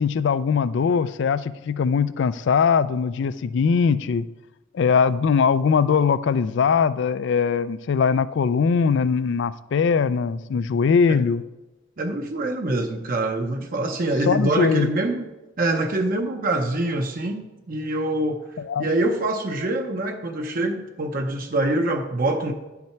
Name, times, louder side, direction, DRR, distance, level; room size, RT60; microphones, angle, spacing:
voice 1, 0.0-4.2 4.7-11.4 14.3-14.9 18.7-18.8, left 6 dB, 60° left, 16 dB, 0.3 m, -21 dB
voice 2, 12.0-15.3 15.6-18.4 18.8-22.5, right 2 dB, 45° right, 3 dB, 0.6 m, -25 dB
10.5 x 5.8 x 4.5 m, 1.1 s
head